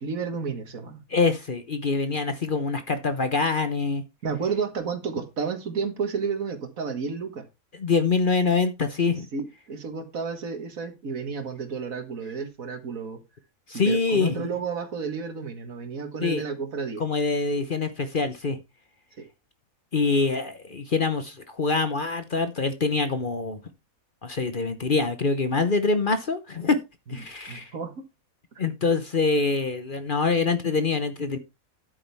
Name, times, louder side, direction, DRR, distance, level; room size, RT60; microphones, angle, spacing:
voice 1, 0.0-1.0 4.2-7.4 9.3-13.2 13.7-17.0 19.2-19.3 27.5-27.9, right 5 dB, 70° right, 2.0 m, -31 dB
voice 2, 1.1-4.0 7.8-9.3 13.7-14.4 16.2-16.4 17.0-18.6 19.9-23.6 24.2-26.8 27.1-27.7 28.6-31.4, left 4 dB, 40° left, 1.0 m, -25 dB
10.0 x 8.5 x 3.5 m
omnidirectional pair, 1.5 m